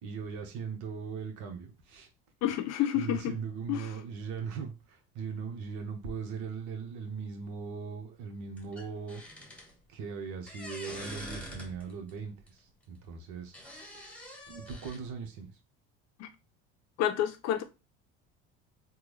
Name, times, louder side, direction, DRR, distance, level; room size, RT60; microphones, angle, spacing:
voice 1, 0.0-2.1 2.9-9.2 9.9-13.5 14.5-15.5, right 5 dB, 70° right, 1.1 m, -39 dB
voice 2, 2.4-3.3 3.7-3.9 16.2-16.3 17.0-17.6, left 11 dB, 60° left, 0.7 m, -29 dB
sound 1, 8.6-9.8 10.5-12.1 12.5-12.6 13.5-15.0, equal, 5° left, 1.1 m, -45 dB
3.6 x 2.3 x 3.1 m
supercardioid pair, 100°, 31 cm